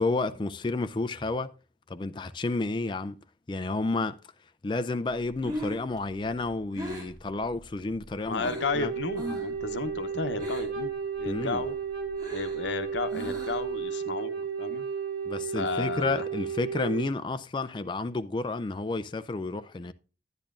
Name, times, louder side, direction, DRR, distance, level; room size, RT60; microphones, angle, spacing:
voice 1, 0.0-1.5 1.9-3.2 3.5-4.2 4.6-8.9 11.3-11.6 15.3-19.9, left 3 dB, 25° left, 0.4 m, -31 dB
Breathing, 5.4-8.8 9.1-9.6 9.8-10.9 11.2-13.8, equal, 20° right, 3.1 m, -39 dB
voice 2, 8.3-10.9 11.2-11.7 12.3-14.8 15.5-16.2, left 4 dB, 90° left, 0.8 m, -33 dB
Wind instrument woodwind instrument, 8.4-17.1, right 6 dB, 60° right, 1.9 m, -33 dB
10.5 x 10.0 x 2.4 m
head